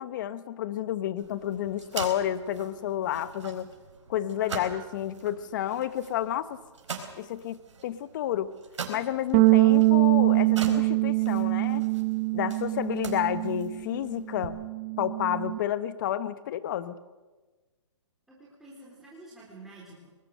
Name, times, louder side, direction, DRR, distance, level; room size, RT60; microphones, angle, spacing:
voice 1, 0.0-3.7 4.1-6.6 7.2-8.5 8.9-11.8 12.3-14.6 15.0-17.0, left 11 dB, 40° left, 14 dB, 1.1 m, -30 dB
sound 1, 1.2-14.5, right 5 dB, 70° right, 4.3 m, -43 dB
voice 2, 8.8-9.2 18.3-20.1, right 2 dB, ahead, -7 dB, 4.1 m, -49 dB
sound 2, 9.3-13.9 14.2-15.6, right 20 dB, 25° right, 0.7 m, -24 dB
23.0 x 20.0 x 6.7 m, 1.3 s
hypercardioid pair, 150°, 16 cm